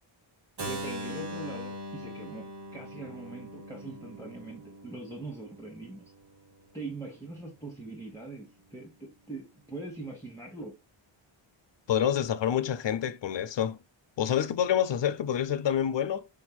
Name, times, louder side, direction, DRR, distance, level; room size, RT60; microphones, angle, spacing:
voice 1, 0.6-6.1 6.7-10.8, right 2 dB, 5° left, 1.0 m, -42 dB
Keyboard (musical), 0.6-6.4, right 1 dB, 60° right, 1.1 m, -41 dB
voice 2, 11.9-13.8 14.2-16.3, left 9 dB, 65° left, 0.5 m, -27 dB
4.9 x 4.3 x 2.2 m
wide cardioid pair, 55°, 47 cm